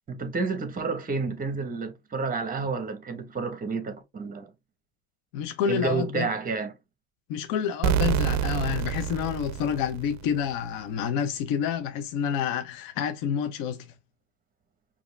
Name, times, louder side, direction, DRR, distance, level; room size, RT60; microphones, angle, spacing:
voice 1, 0.1-4.5 5.7-6.7, right 4 dB, 20° right, 1.1 m, -30 dB
voice 2, 5.3-6.3 7.3-13.9, left 8 dB, 50° left, 0.8 m, -28 dB
sound 1, 7.8-10.5, right 9 dB, 40° right, 0.5 m, -27 dB
4.7 x 2.9 x 3.3 m
supercardioid pair, 110°, 43 cm